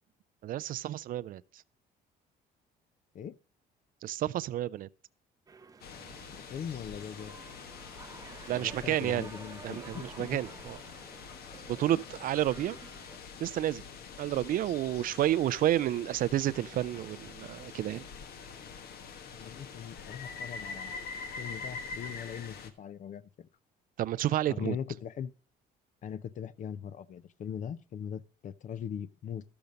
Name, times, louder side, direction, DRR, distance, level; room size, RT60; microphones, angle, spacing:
voice 1, 0.4-1.6 4.0-4.9 8.5-9.3 9.6-10.8 11.7-12.8 13.4-13.8 14.2-18.1 24.0-24.8, right 13 dB, 55° right, 0.4 m, -30 dB
sound 1, 5.5-13.2, right 4 dB, 20° right, 0.7 m, -51 dB
sound 2, 5.8-22.7, left 5 dB, 70° left, 1.2 m, -45 dB
voice 2, 6.3-7.4 8.5-10.4 19.3-20.9 21.4-23.5 24.5-25.3 26.0-29.4, left 8 dB, 50° left, 0.6 m, -40 dB
12.0 x 6.9 x 5.1 m
cardioid pair, 110°, 17 cm